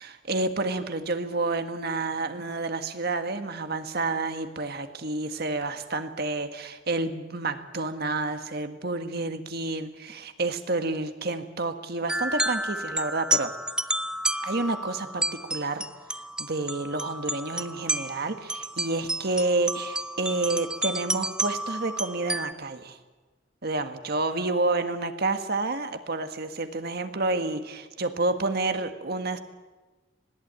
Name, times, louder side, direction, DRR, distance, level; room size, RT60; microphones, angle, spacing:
voice 1, 0.0-13.5 14.4-15.9 16.4-23.0 23.6-29.4, right 2 dB, 55° right, 8 dB, 1.6 m, -29 dB
sound 1, 12.1-22.5, right 1 dB, 5° right, 0.6 m, -31 dB
20.0 x 17.0 x 8.9 m, 1.3 s
head